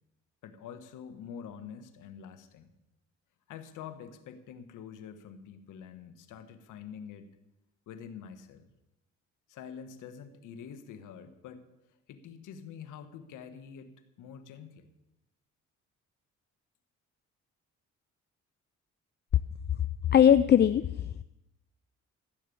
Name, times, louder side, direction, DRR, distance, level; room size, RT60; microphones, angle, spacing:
voice 1, 0.4-2.7 3.5-7.3 7.9-8.7 9.5-11.6 12.1-13.9 14.2-14.9, left 7 dB, 90° left, 9 dB, 1.4 m, -46 dB
voice 2, 20.1-21.2, left 9 dB, 35° left, 14 dB, 0.4 m, -21 dB
15.0 x 6.7 x 8.6 m, 0.89 s
cardioid pair, 90°, 30 cm